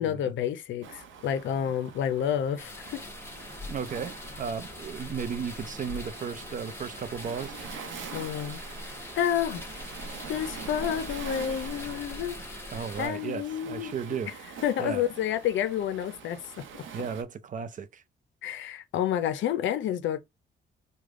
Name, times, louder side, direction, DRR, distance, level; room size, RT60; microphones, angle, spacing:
voice 1, 0.0-3.1 8.1-9.6 10.3-12.4 13.0-13.9 14.6-16.8 18.4-20.2, left 9 dB, 75° left, 0.5 m, -30 dB
Waves surf, 0.8-17.2, right 7 dB, 75° right, 0.7 m, -45 dB
sound 1, 2.6-13.1, left 2 dB, 10° left, 0.9 m, -42 dB
voice 2, 3.7-7.6 12.7-14.3 14.8-15.0 16.9-18.0, right 6 dB, 40° right, 0.5 m, -35 dB
3.3 x 2.2 x 3.6 m
cardioid pair, 90°, 20 cm